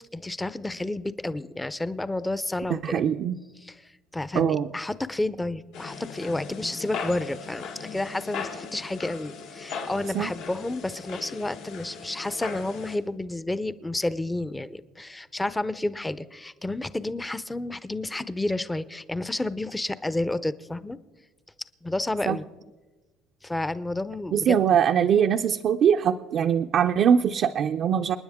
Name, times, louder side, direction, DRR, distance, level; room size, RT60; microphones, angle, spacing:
voice 1, 0.0-3.0 3.6-21.0 21.8-22.5 23.4-24.6, left 2 dB, 10° left, 15 dB, 0.6 m, -30 dB
voice 2, 2.8-3.4 4.3-4.7 10.1-10.3 22.3-22.4 24.3-28.2, right 8 dB, 55° right, 4 dB, 0.5 m, -22 dB
sound 1, 5.7-13.0, left 5 dB, 85° left, 3.2 m, -38 dB
29.0 x 9.8 x 3.6 m, 1.2 s
cardioid pair, 105°, 0 cm